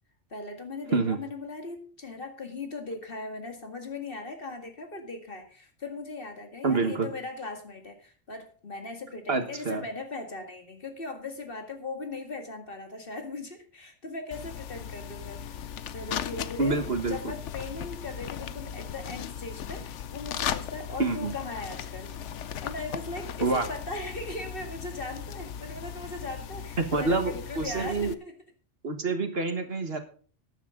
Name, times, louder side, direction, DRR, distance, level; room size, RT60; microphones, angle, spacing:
voice 1, 0.3-15.5 15.9-22.2 22.6-28.4, left 3 dB, 50° left, 5 dB, 2.1 m, -39 dB
voice 2, 6.6-7.1 9.3-9.8 16.6-17.3 21.0-21.3 23.4-23.7 26.9-28.1 28.8-30.0, right 3 dB, 60° right, 7 dB, 1.7 m, -27 dB
sound 1, 14.3-28.1, left 8 dB, 85° left, 1.0 m, -37 dB
13.5 x 10.0 x 3.8 m, 0.42 s
omnidirectional pair, 1.2 m